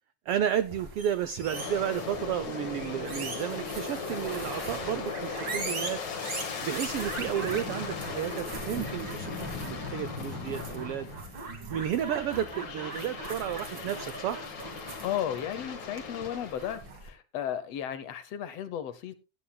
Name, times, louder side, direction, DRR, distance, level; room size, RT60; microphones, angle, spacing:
voice 1, 0.3-6.0 6.6-11.2 11.7-14.4, right 10 dB, 80° right, 1.3 m, -32 dB
sound 1, 0.6-17.1, right 3 dB, 40° right, 2.8 m, -41 dB
Aircraft, 1.4-11.5 11.9-16.9, left 5 dB, 45° left, 2.0 m, -38 dB
voice 2, 15.0-19.2, left 10 dB, 65° left, 1.8 m, -34 dB
17.0 x 9.6 x 2.3 m
omnidirectional pair, 3.3 m